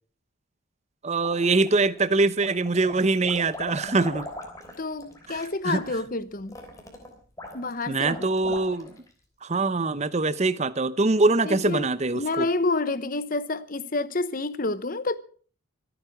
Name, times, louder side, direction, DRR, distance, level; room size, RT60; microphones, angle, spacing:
voice 1, 1.0-4.3 5.3-5.8 7.9-8.9 9.4-12.5, right 3 dB, 30° right, 0.7 m, -23 dB
sound 1, 1.2-2.0 2.4-9.1, left 1 dB, 15° left, 3.2 m, -40 dB
voice 2, 4.8-6.6 7.5-8.5 11.4-11.9 12.1-15.2, left 3 dB, 40° left, 0.9 m, -29 dB
25.0 x 9.2 x 4.7 m
head